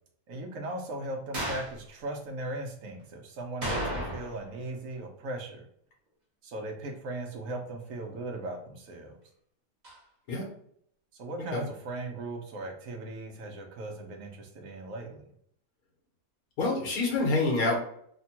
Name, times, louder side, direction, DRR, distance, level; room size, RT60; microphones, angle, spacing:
voice 1, 0.3-5.7 6.4-9.2 11.1-15.3, right 2 dB, 75° right, 2 dB, 1.1 m, -38 dB
sound 1, 1.3-1.8 3.6-4.5 4.7-4.8 9.8-10.0, equal, 35° right, 1.0 m, -33 dB
voice 2, 16.6-17.8, left 3 dB, 85° left, -2 dB, 1.5 m, -27 dB
3.3 x 2.2 x 2.8 m, 0.67 s
omnidirectional pair, 1.5 m